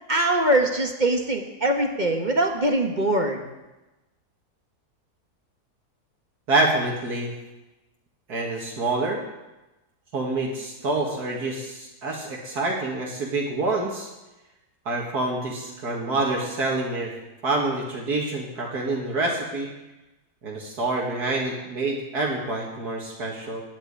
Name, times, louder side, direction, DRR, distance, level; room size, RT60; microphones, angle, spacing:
voice 1, 0.1-3.4, right 1 dB, 30° right, 3 dB, 1.4 m, -22 dB
voice 2, 6.5-7.4 8.3-9.2 10.1-14.1 14.9-17.2 17.4-19.7 20.4-23.6, right 2 dB, 80° right, -2 dB, 2.4 m, -27 dB
16.5 x 6.1 x 9.9 m, 1.0 s
omnidirectional pair, 1.6 m